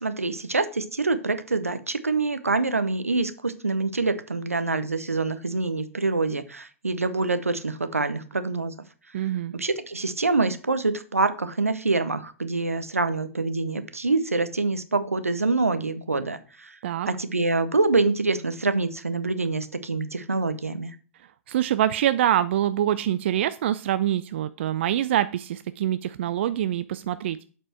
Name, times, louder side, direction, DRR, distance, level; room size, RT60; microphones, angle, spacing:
voice 1, 0.0-8.7 9.5-16.8 17.1-20.9, right 3 dB, 85° right, 11 dB, 0.7 m, -25 dB
voice 2, 9.1-9.5 16.8-17.1 21.5-27.4, right 11 dB, 55° right, 13 dB, 0.4 m, -25 dB
8.1 x 4.4 x 4.4 m, 0.39 s
figure-of-eight pair, 105°, 8 cm